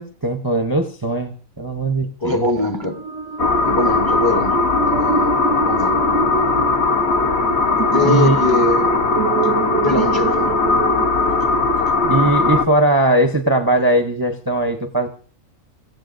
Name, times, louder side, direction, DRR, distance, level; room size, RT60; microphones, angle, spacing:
voice 1, 0.0-2.5 8.0-8.4 12.0-15.1, right 2 dB, 20° right, 0.7 m, -19 dB
voice 2, 2.2-3.0 3.6-4.6 4.9-5.3 5.6-6.0 7.9-8.9 9.8-10.5, left 2 dB, 20° left, 0.9 m, -21 dB
sound 1, 2.7-12.1, right 6 dB, 75° right, 1.2 m, -27 dB
sound 2, 3.4-12.6, left 3 dB, 55° left, 1.2 m, -18 dB
25.5 x 15.0 x 2.6 m
omnidirectional pair, 1.4 m